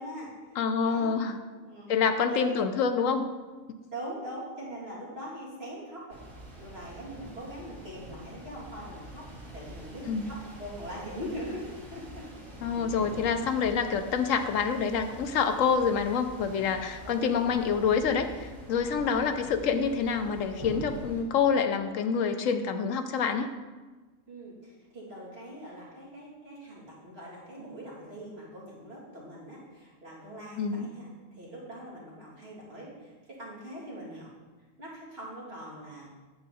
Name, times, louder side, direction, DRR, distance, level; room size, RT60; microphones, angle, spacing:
voice 1, 0.0-1.1 1.5-2.0 2.3-2.7 3.9-6.2 6.6-12.3 12.8-13.0 17.0-17.5 19.1-19.4 24.3-34.3 34.8-36.1, equal, 50° right, -7 dB, 3.1 m, -42 dB
voice 2, 0.6-1.4 1.9-3.3 10.1-10.3 12.6-23.5 30.6-30.9, left 6 dB, 75° left, 8 dB, 1.0 m, -27 dB
sound 1, 6.1-21.2, right 1 dB, 90° right, 2.8 m, -45 dB
9.0 x 7.5 x 4.2 m, 1.3 s
omnidirectional pair, 1.4 m